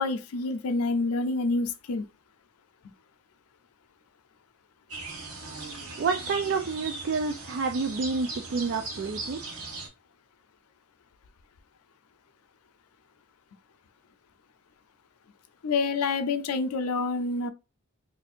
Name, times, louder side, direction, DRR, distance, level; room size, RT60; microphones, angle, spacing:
voice 1, 0.0-2.1 15.6-17.5, left 3 dB, 90° left, 0.5 m, -27 dB
sound 1, 4.9-9.9, right 3 dB, 90° right, 1.1 m, -39 dB
voice 2, 6.0-9.4, right 4 dB, 55° right, 0.4 m, -29 dB
2.7 x 2.4 x 4.2 m
head